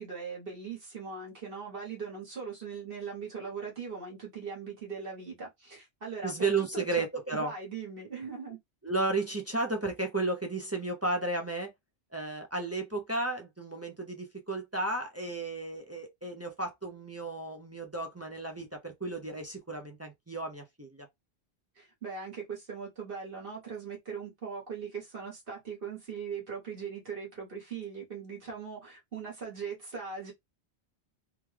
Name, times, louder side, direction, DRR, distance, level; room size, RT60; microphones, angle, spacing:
voice 1, 0.0-7.0 7.3-8.6 21.7-30.3, right 5 dB, 55° right, 1.3 m, -40 dB
voice 2, 6.2-7.5 8.8-11.7 12.1-21.1, right 2 dB, 20° right, 0.4 m, -33 dB
3.5 x 2.3 x 3.2 m
omnidirectional pair, 1.2 m